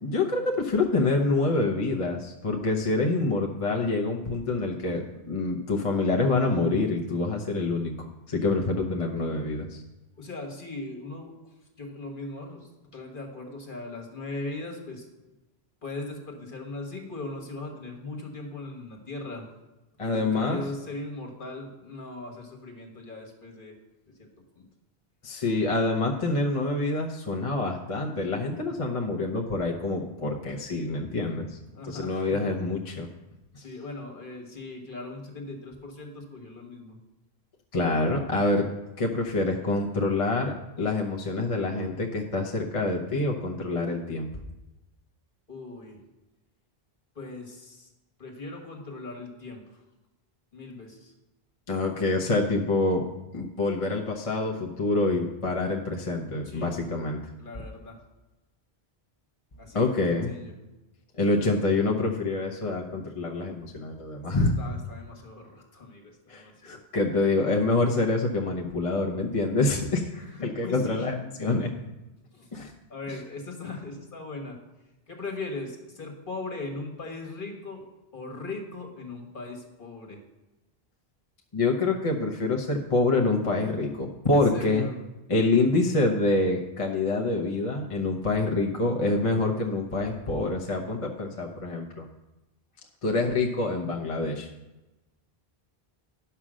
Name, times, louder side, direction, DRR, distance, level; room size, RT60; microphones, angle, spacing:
voice 1, 0.0-9.8 20.0-20.6 25.2-31.5 31.9-33.1 37.7-38.7 39.0-44.3 51.7-53.0 53.3-57.2 59.7-60.3 61.2-64.6 66.3-70.1 70.4-71.7 72.5-72.7 81.5-84.9 85.3-92.1 93.0-94.5, left 2 dB, 35° left, 0 dB, 0.9 m, -26 dB
voice 2, 10.2-11.3 11.8-15.0 15.8-19.4 20.0-23.8 24.1-24.3 24.5-24.6 31.7-32.5 33.6-37.0 45.5-46.0 47.1-47.9 48.2-49.8 50.5-51.1 56.4-56.7 57.4-58.0 59.6-60.5 64.2-64.3 64.6-66.8 70.1-71.1 72.3-72.5 72.9-74.6 75.1-77.8 78.1-80.2 84.3-84.9, left 2 dB, 55° left, 2 dB, 1.7 m, -39 dB
10.5 x 5.6 x 6.2 m, 1.0 s
omnidirectional pair, 1.0 m